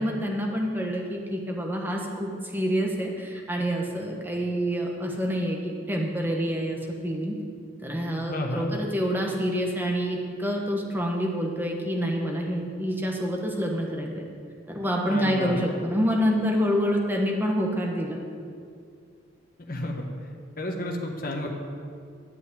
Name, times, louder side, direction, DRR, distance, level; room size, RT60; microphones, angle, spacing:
voice 1, 0.0-7.4 7.8-14.2 14.7-18.2, equal, 10° right, 0 dB, 1.2 m, -27 dB
voice 2, 8.3-8.7 15.0-15.6 19.7-20.0 20.6-21.5, left 1 dB, 45° left, 2 dB, 1.2 m, -31 dB
11.0 x 5.1 x 8.5 m, 2.4 s
head